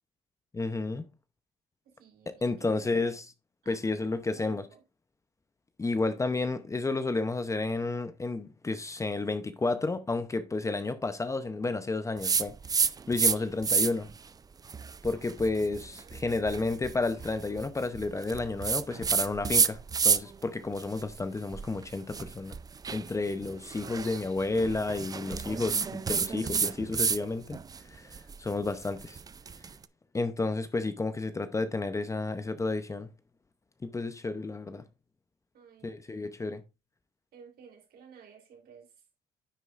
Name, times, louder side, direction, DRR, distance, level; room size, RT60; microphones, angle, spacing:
voice 1, 0.5-1.1 2.3-3.2 3.7-4.7 5.8-14.1 15.0-22.6 22.9-27.6 27.9-29.2 30.1-33.1 33.8-34.8 35.8-36.6, left 3 dB, 20° left, 0.7 m, -31 dB
voice 2, 1.9-3.2 3.6-3.8 4.3-4.8 13.3-13.5 35.5-36.3 37.3-38.9, right 6 dB, 65° right, 3.4 m, -54 dB
sound 1, 12.2-13.4 13.6-14.1 14.6-20.4 20.8-27.2 27.5-29.7, right 5 dB, 20° right, 0.4 m, -30 dB
10.0 x 8.0 x 2.5 m
cardioid pair, 110°, 17 cm